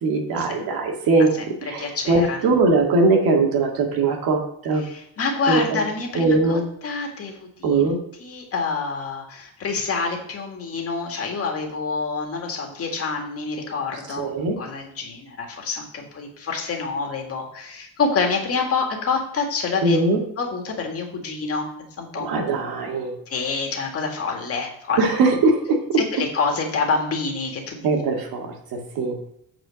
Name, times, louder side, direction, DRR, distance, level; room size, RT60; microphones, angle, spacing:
voice 1, 0.0-1.3 1.6-4.8 5.5-5.9 6.1-6.6 7.6-8.0 13.9-14.6 19.8-20.2 22.2-23.1 25.0-26.3 27.8-29.3, right 3 dB, 75° right, 2 dB, 2.0 m, -21 dB
voice 2, 1.8-2.4 4.8-7.9 8.2-14.3 14.6-20.0 20.4-21.7 22.0-22.3 23.3-25.0 26.1-27.9, left 4 dB, 40° left, 2 dB, 2.0 m, -27 dB
8.8 x 4.6 x 6.3 m, 0.71 s
cardioid pair, 145°, 36 cm